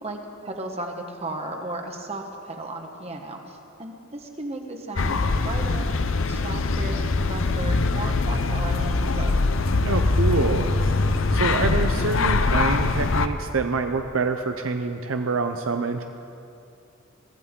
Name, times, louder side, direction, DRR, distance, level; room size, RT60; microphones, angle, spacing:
voice 1, 0.0-6.0 6.3-9.5, right 1 dB, 30° right, 2 dB, 1.3 m, -35 dB
sound 1, 5.0-13.3, left 3 dB, 70° left, 0.7 m, -23 dB
voice 2, 9.8-10.7 11.3-16.0, right 4 dB, 75° right, 6 dB, 0.7 m, -26 dB
23.0 x 15.0 x 3.8 m, 2.6 s
head